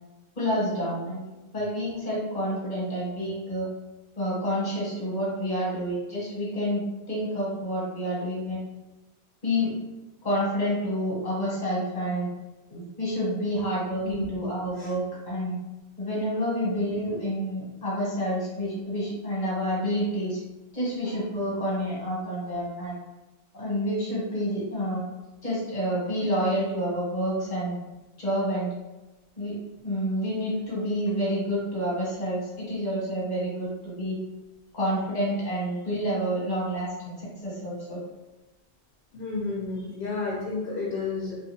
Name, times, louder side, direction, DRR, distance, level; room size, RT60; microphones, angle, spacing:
voice 1, 0.4-3.7 4.2-8.6 9.4-9.7 10.2-12.3 12.7-15.6 16.0-20.4 20.7-23.0 23.5-25.0 25.4-27.8 28.2-28.7 29.4-29.5 29.8-34.1 34.7-38.0, equal, 50° left, -6 dB, 1.1 m, -28 dB
voice 2, 14.0-14.4 14.8-14.9 39.1-41.4, left 3 dB, 65° left, -5 dB, 0.8 m, -31 dB
2.4 x 2.4 x 2.6 m, 1.1 s
omnidirectional pair, 1.0 m